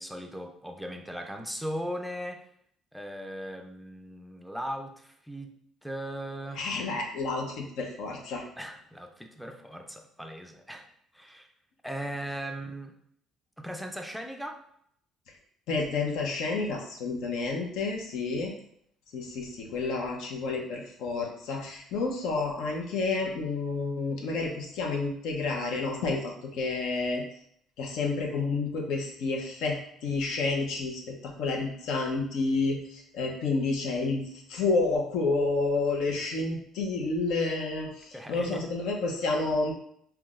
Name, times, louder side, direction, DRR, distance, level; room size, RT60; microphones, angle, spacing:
voice 1, 0.0-2.5 2.9-5.5 5.8-6.7 8.6-10.9 11.1-11.5 11.8-13.0 13.6-14.6 38.1-38.6, equal, ahead, 4 dB, 0.4 m, -38 dB
voice 2, 6.6-8.4 15.7-18.5 19.1-27.2 27.8-29.8 30.0-39.7, left 3 dB, 75° left, 0 dB, 0.8 m, -30 dB
5.7 x 2.3 x 2.5 m, 0.68 s
cardioid pair, 130°, 0 cm